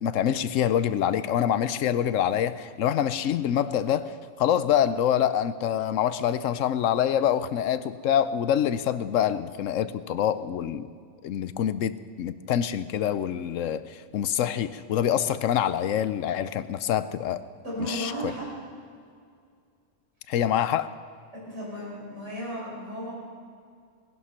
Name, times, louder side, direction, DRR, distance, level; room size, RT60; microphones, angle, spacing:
voice 1, 0.0-10.9 11.2-17.4 17.8-18.1 20.3-20.9, left 10 dB, 80° left, 14 dB, 1.0 m, -26 dB
voice 2, 17.6-18.5 21.3-23.1, equal, 65° right, -5 dB, 5.7 m, -34 dB
19.0 x 11.0 x 5.7 m, 2.2 s
omnidirectional pair, 1.3 m